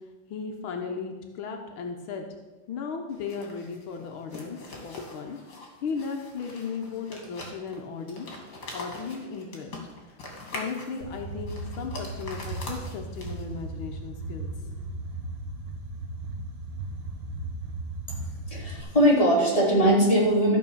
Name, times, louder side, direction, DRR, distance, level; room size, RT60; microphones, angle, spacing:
voice 1, 0.3-2.3 2.7-4.6 4.8-8.3 8.7-9.7 10.5-14.7, left 5 dB, 80° left, 3 dB, 1.8 m, -36 dB
sound 1, 3.1-13.6, left 2 dB, 55° left, 2.9 m, -43 dB
sound 2, 11.0-18.8, right 2 dB, 75° right, 2.0 m, -36 dB
voice 2, 18.5-20.6, equal, 15° left, -5 dB, 3.5 m, -21 dB
13.5 x 5.5 x 7.2 m, 1.2 s
omnidirectional pair, 2.2 m